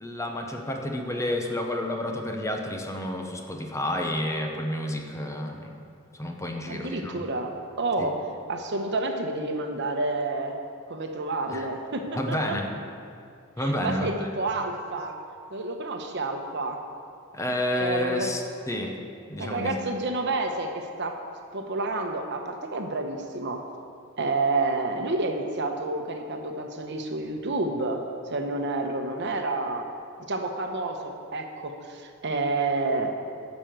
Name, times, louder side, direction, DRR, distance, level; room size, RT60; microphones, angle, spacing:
voice 1, 0.0-5.7 6.2-7.3 8.0-8.1 11.5-11.7 12.1-12.7 13.6-14.3 17.3-19.0 19.3-19.7, left 1 dB, 15° left, 2 dB, 0.8 m, -30 dB
voice 2, 6.7-8.1 8.5-10.6 10.9-12.6 13.6-15.2 15.5-16.8 17.8-18.3 19.4-21.1 21.5-23.6 24.2-28.0 28.3-29.9 30.3-33.1, right 2 dB, 55° right, 4 dB, 1.0 m, -29 dB
11.5 x 5.4 x 7.6 m, 2.4 s
head